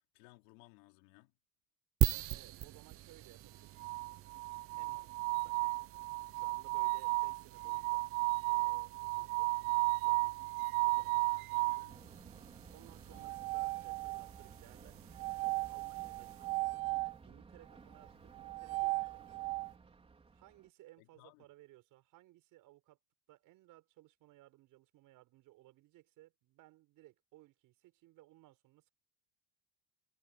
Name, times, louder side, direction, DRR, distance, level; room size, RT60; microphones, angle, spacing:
voice 1, 0.1-1.3 11.5-12.0 13.1-13.4 21.0-21.5, left 24 dB, 80° left, 4.1 m, -62 dB
sound 1, 2.0-16.7, right 16 dB, 30° right, 0.7 m, -42 dB
voice 2, 2.3-4.2 4.8-5.9 6.3-8.1 8.4-12.3 12.7-15.4 15.7-19.6 20.3-23.0 23.3-28.9, right 17 dB, 45° right, 6.8 m, -62 dB
sound 2, 3.8-11.9 13.1-14.4 15.2-17.1 18.3-19.7, right 23 dB, 75° right, 1.3 m, -35 dB
Thunder, 11.9-20.7, right 4 dB, 15° right, 4.6 m, -57 dB
cardioid pair, 170°, 43 cm